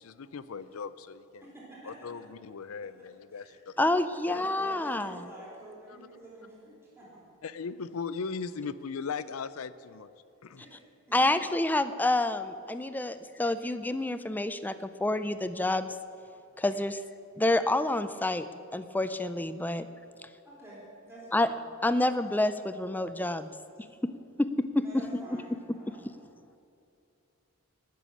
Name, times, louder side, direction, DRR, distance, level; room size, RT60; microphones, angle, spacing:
voice 1, 0.0-1.4 1.8-3.9 4.3-4.7 5.9-6.0 7.4-10.1 10.4-10.6 16.3-16.5, left 5 dB, 80° left, 15 dB, 0.5 m, -38 dB
voice 2, 1.4-1.9 3.3-3.9 4.2-7.1 10.6-10.8 11.1-11.2 20.4-21.6 24.8-26.1, right 1 dB, 10° right, -8 dB, 3.5 m, -48 dB
voice 3, 3.8-5.2 11.1-15.9 16.6-17.0 17.4-18.5 18.7-19.9 21.3-21.5 21.8-23.5 24.0-24.1 24.4-25.0 25.9-26.0, left 2 dB, 10° left, 11 dB, 0.4 m, -28 dB
19.5 x 6.9 x 6.2 m, 2.8 s
head